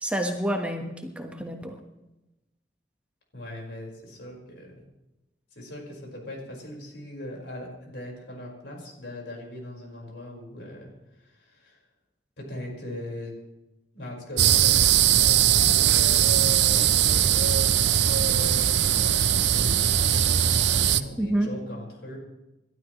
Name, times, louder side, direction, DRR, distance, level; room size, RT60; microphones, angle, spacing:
voice 1, 0.0-1.8 21.2-21.5, right 1 dB, 5° right, 3 dB, 1.3 m, -28 dB
voice 2, 3.3-4.7 5.5-10.9 11.2-11.8 12.4-13.3 13.9-22.2, left 1 dB, 90° left, -1 dB, 5.1 m, -40 dB
sound 1, 14.4-21.0, right 10 dB, 90° right, 0.6 m, -20 dB
28.5 x 12.5 x 3.2 m, 0.97 s
head